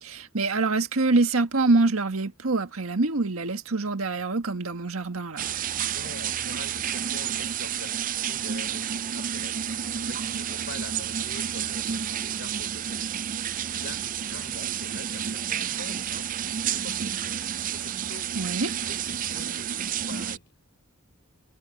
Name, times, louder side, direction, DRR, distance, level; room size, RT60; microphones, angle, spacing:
voice 1, 0.0-5.5 18.3-18.7, right 3 dB, 85° right, 1.6 m, -25 dB
sound 1, 5.4-20.4, right 9 dB, 40° right, 0.4 m, -30 dB
voice 2, 5.9-8.0 8.3-8.8 9.1-9.7 10.0-13.1 13.7-17.3 17.7-18.3 18.8-20.5, left 3 dB, 55° left, 5.6 m, -45 dB
head